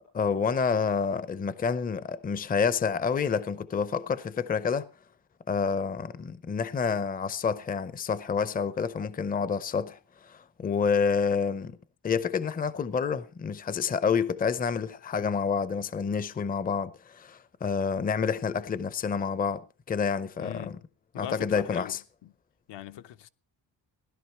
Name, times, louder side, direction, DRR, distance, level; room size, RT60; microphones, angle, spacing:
voice 1, 0.1-4.9 5.5-11.8 12.0-19.6 19.9-20.8 21.2-22.0, left 6 dB, 20° left, 0.6 m, -28 dB
voice 2, 20.4-20.8 21.1-22.3 22.7-23.3, left 12 dB, 70° left, 0.8 m, -41 dB
16.5 x 11.5 x 4.4 m
cardioid pair, 150°, 44 cm